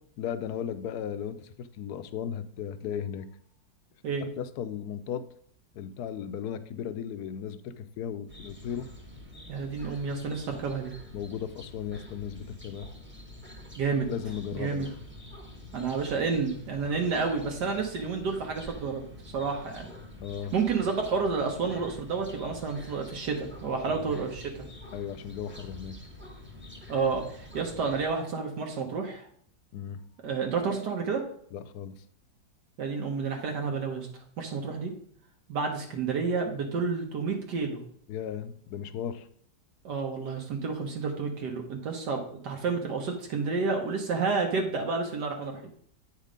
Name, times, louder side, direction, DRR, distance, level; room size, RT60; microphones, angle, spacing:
voice 1, 0.2-3.3 4.4-5.2 5.7-8.9 11.1-12.9 14.0-14.9 20.2-20.5 23.9-24.1 24.9-26.0 29.7-30.0 31.5-32.0 38.1-39.3, left 8 dB, 75° left, 12 dB, 1.1 m, -36 dB
sound 1, 8.3-28.1, left 1 dB, 10° right, 0.8 m, -47 dB
voice 2, 9.5-10.9 13.8-14.1 14.6-14.9 15.7-19.0 19.3-19.9 20.5-24.6 26.9-29.3 30.2-31.2 32.8-34.1 34.4-34.9 35.5-37.8 39.8-45.7, right 4 dB, 80° right, 2 dB, 1.6 m, -30 dB
8.3 x 4.3 x 5.0 m, 0.63 s
omnidirectional pair, 1.8 m